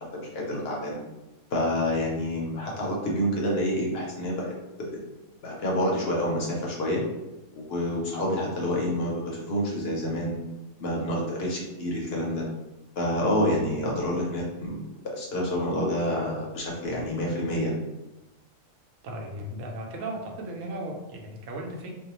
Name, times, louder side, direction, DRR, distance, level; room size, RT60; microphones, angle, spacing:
voice 1, 0.1-1.0 1.5-5.1 5.4-7.0 7.5-10.4 10.8-12.4 13.0-14.8 15.0-17.8, left 1 dB, 60° left, -2 dB, 0.8 m, -28 dB
voice 2, 19.0-21.9, right 1 dB, 90° right, 0 dB, 1.0 m, -36 dB
2.5 x 2.1 x 2.8 m, 1.0 s
omnidirectional pair, 1.3 m